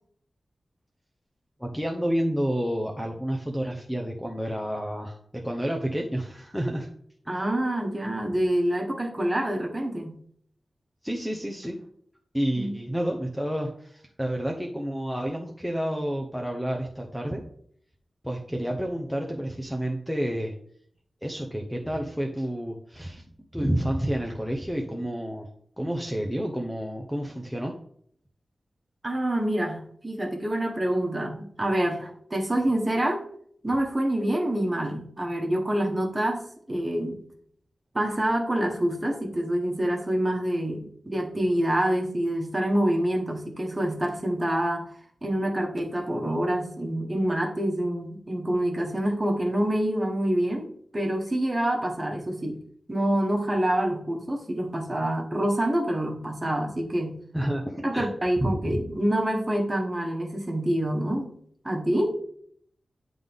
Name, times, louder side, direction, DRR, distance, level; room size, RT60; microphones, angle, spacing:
voice 1, 1.6-6.9 7.3-7.4 11.0-11.8 12.3-17.4 18.2-20.5 21.2-23.2 23.5-25.5 25.8-27.7 57.3-58.1 58.4-58.8, equal, 5° left, 2 dB, 0.7 m, -30 dB
voice 2, 7.3-10.2 12.6-12.8 29.0-33.2 33.6-37.2 37.9-44.8 45.2-50.7 50.9-52.6 52.9-57.2 57.8-61.3 61.6-62.2, right 1 dB, 20° right, 1 dB, 1.4 m, -26 dB
9.6 x 3.8 x 3.6 m, 0.63 s
wide cardioid pair, 115°, 0 cm